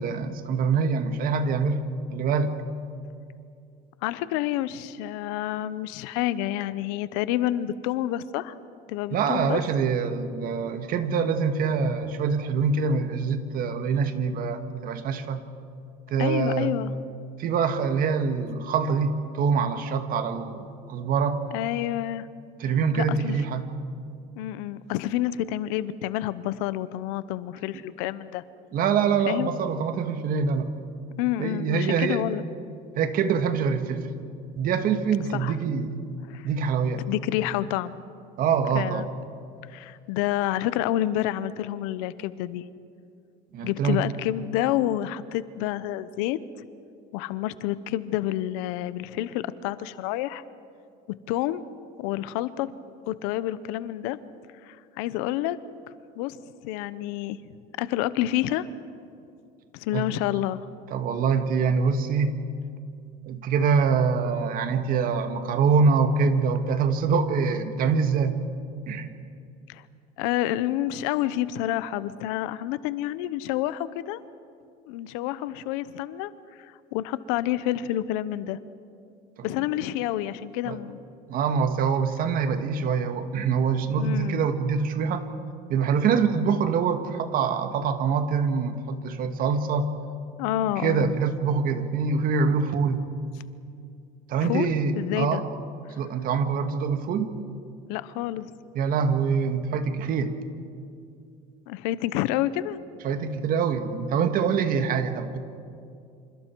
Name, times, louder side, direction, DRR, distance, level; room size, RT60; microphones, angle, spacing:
voice 1, 0.0-1.8 2.1-2.5 9.1-15.4 16.1-16.7 17.4-21.4 22.6-23.7 28.7-30.7 31.4-32.2 33.0-34.1 34.6-36.0 36.4-37.1 38.4-39.1 43.5-44.0 59.9-60.1 60.9-62.4 63.3-68.4 68.9-69.1 80.6-80.8 81.3-85.3 85.7-89.9 90.8-93.1 94.3-95.4 96.0-97.3 98.8-100.3 103.0-105.4, right 5 dB, 55° right, 8 dB, 1.9 m, -25 dB
voice 2, 4.0-8.5 8.9-9.6 16.2-16.9 21.5-22.3 22.9-23.4 24.3-28.4 29.3-29.5 31.2-32.4 35.3-35.6 36.3-36.5 37.1-37.9 38.7-39.1 39.7-42.6 43.6-46.4 47.1-50.4 51.3-51.6 52.0-52.7 53.1-54.2 54.6-55.6 56.2-56.4 56.6-57.4 57.8-58.7 59.7-60.6 69.7-69.8 70.2-74.2 74.9-76.3 76.7-78.6 79.4-81.0 84.0-84.4 90.4-91.1 94.4-95.4 97.9-98.5 101.7-102.8, left 13 dB, 90° left, 15 dB, 0.9 m, -28 dB
27.5 x 27.5 x 4.6 m, 2.4 s
cardioid pair, 125°, 18 cm